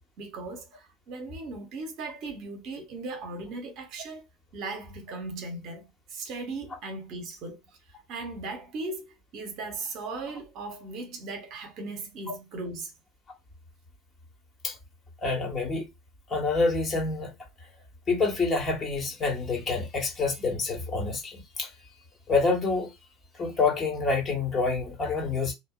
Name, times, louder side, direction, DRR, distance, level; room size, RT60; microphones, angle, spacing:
voice 1, 0.2-4.3 4.5-7.6 8.1-9.1 9.3-12.9, right 3 dB, 55° right, 0.8 m, -37 dB
voice 2, 15.2-15.9 16.3-17.3 18.1-21.7 22.3-22.9 23.4-25.5, left 4 dB, 35° left, 1.2 m, -27 dB
2.7 x 2.2 x 2.3 m
figure-of-eight pair, 70°, 0 cm